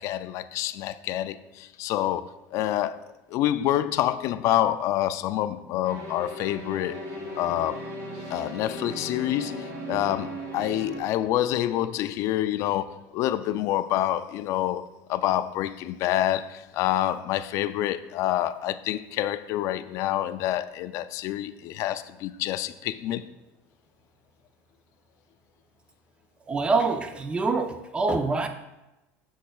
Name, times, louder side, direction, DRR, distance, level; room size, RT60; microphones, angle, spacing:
voice 1, 0.0-7.0 7.4-7.8 8.3-23.2, left 13 dB, 50° left, 0.3 m, -27 dB
sound 1, 5.8-11.0, right 1 dB, 60° right, 2.0 m, -37 dB
voice 2, 26.5-28.5, right 3 dB, 15° right, 0.5 m, -25 dB
8.3 x 6.5 x 2.3 m
cardioid pair, 145°, 7 cm